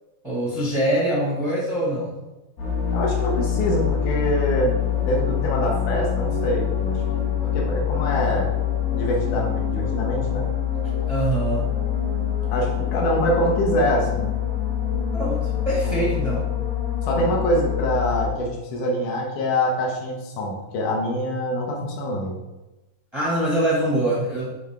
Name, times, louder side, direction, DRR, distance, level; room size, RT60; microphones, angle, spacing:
voice 1, 0.2-2.2 11.1-11.7 15.1-16.4 23.1-24.5, right 1 dB, 40° right, -6 dB, 0.3 m, -24 dB
sound 1, 2.6-18.3, left 9 dB, 80° left, 3.9 m, -25 dB
voice 2, 2.9-8.5 8.9-10.5 12.5-14.4 15.8-15.9 17.0-22.4, equal, 65° left, -1 dB, 2.7 m, -25 dB
10.0 x 5.1 x 3.6 m, 1.0 s
omnidirectional pair, 4.0 m